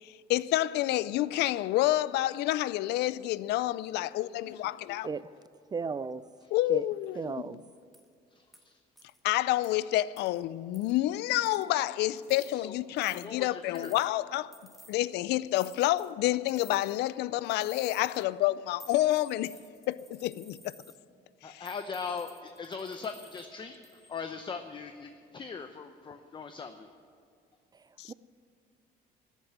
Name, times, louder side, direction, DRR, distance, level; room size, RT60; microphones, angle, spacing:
voice 1, 0.0-5.1 6.5-7.4 9.2-14.5 14.9-19.5 19.9-20.8 21.4-21.7 28.0-28.1, left 15 dB, 80° left, 0.4 m, -29 dB
voice 2, 5.7-6.2 6.7-6.9 7.2-7.6 28.1-28.2, right 5 dB, 25° right, 0.3 m, -34 dB
sound 1, 7.9-8.1 8.5-8.6 9.0-9.2 9.6-9.7 10.2-10.4 10.7-11.0 11.5-11.8 12.2-12.5 13.0-13.3 13.8-14.1 14.5-15.0 15.5-16.1 16.5-17.1 17.4-18.2 18.8-21.0 21.7-23.5 23.8-24.2, equal, ahead, 1.3 m, -54 dB
voice 3, 8.4-8.7 12.6-14.0 21.4-26.9, left 5 dB, 30° left, 0.7 m, -40 dB
14.0 x 8.2 x 9.8 m
cardioid pair, 110°, 17 cm